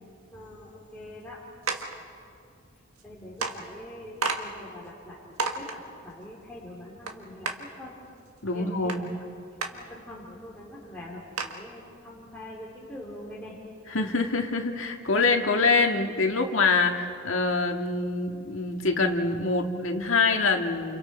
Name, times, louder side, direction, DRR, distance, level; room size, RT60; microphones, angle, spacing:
voice 1, 0.3-1.4 3.0-7.9 8.5-9.1 9.6-13.6, left 1 dB, 5° left, -7 dB, 3.1 m, -44 dB
sound 1, 1.7-2.0 3.0-3.1 3.4-3.6 4.2-4.4 4.9-5.0 5.4-5.8 7.1-7.2 7.5-7.6 8.9-9.0 9.6-9.7 10.3-10.4 10.7-10.8 11.4-11.6, right 4 dB, 90° right, 1.7 m, -30 dB
voice 2, 8.4-9.0 13.9-21.0, left 3 dB, 65° left, 3 dB, 1.9 m, -25 dB
29.5 x 29.0 x 4.4 m, 2.4 s
head